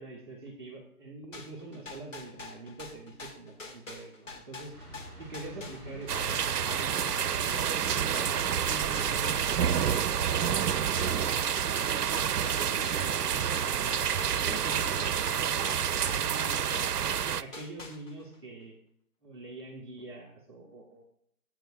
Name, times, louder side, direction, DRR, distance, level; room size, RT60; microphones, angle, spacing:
voice 1, 0.0-4.7 5.2-10.3 10.8-12.0 12.4-14.0 14.4-18.7 19.2-21.0, right 2 dB, 15° right, -5 dB, 1.3 m, -45 dB
sound 1, 1.3-8.6 9.0-17.2 17.5-18.3, left 3 dB, 55° left, 2.4 m, -45 dB
sound 2, 4.7-10.1, right 1 dB, 5° left, 4.1 m, -46 dB
sound 3, 6.1-17.4, right 8 dB, 85° right, 0.6 m, -28 dB
14.5 x 8.8 x 2.6 m, 0.68 s
figure-of-eight pair, 170°, 45 cm